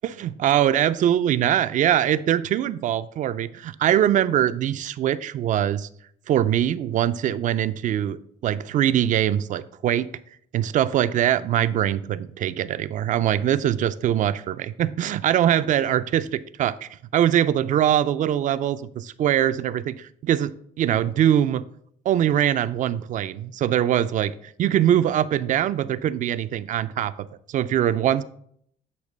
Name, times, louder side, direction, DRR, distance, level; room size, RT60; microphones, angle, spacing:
voice 1, 0.0-5.9 6.3-10.1 10.5-21.7 22.1-28.2, right 11 dB, 50° right, 15 dB, 0.4 m, -22 dB
8.1 x 2.9 x 5.2 m, 0.66 s
cardioid pair, 110°, 17 cm